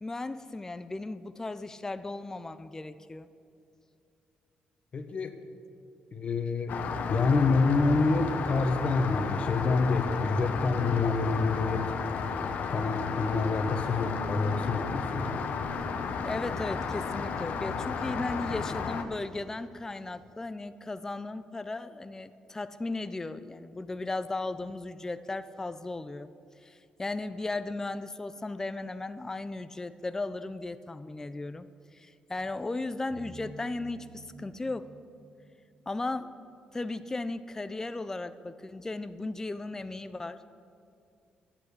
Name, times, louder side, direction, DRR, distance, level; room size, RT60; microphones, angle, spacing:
voice 1, 0.0-3.3 16.2-26.3 26.6-31.7 31.9-34.9 35.9-36.3 36.7-40.5, left 2 dB, 20° left, 11 dB, 0.5 m, -36 dB
voice 2, 4.9-5.4 6.1-6.7 7.1-11.8 12.7-15.4, left 3 dB, 45° left, 7 dB, 1.2 m, -27 dB
Rain, 6.7-19.0, left 5 dB, 70° left, 1.0 m, -33 dB
sound 1, 33.1-36.3, right 1 dB, 35° right, 2.6 m, -50 dB
11.5 x 8.9 x 8.4 m, 2.6 s
cardioid pair, 85°, 3 cm